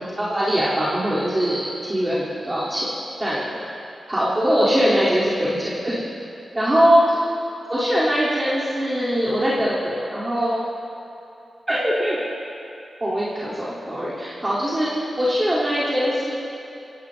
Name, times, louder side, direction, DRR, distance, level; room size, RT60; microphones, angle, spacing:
voice 1, 0.0-2.9 3.2-3.5 4.1-6.0 6.5-7.0 7.7-10.7 11.7-12.2 13.0-16.3, equal, 20° right, -10 dB, 3.5 m, -22 dB
25.0 x 18.0 x 2.8 m, 2.8 s
wide cardioid pair, 100°, 0 cm